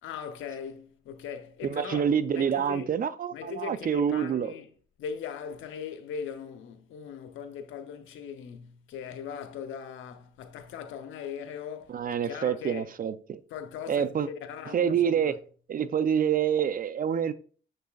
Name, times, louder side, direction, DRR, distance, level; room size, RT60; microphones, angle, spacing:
voice 1, 0.0-2.1 2.3-2.9 3.3-4.7 5.0-12.9 13.5-15.3, left 7 dB, 85° left, 0.9 m, -39 dB
voice 2, 1.6-4.5 11.9-13.4 13.9-14.3 14.7-15.3 15.7-17.3, right 8 dB, 45° right, 0.6 m, -27 dB
6.8 x 6.6 x 2.4 m
cardioid pair, 90°, 20 cm